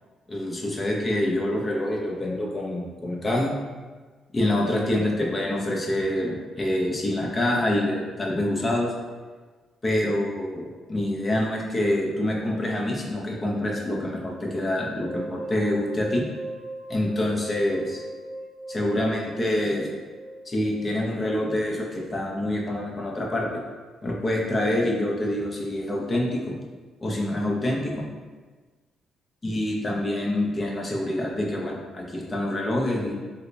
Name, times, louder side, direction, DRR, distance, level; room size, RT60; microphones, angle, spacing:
voice 1, 0.3-3.5 4.3-8.9 9.8-16.2 16.9-18.0 18.7-19.9 20.5-23.5 24.0-26.4 27.0-28.0 29.4-33.1, left 1 dB, 30° left, -1 dB, 0.6 m, -26 dB
sound 1, 15.0-23.0, right 1 dB, 25° right, 0.6 m, -39 dB
3.8 x 2.0 x 3.2 m, 1.4 s
cardioid pair, 90°, 0 cm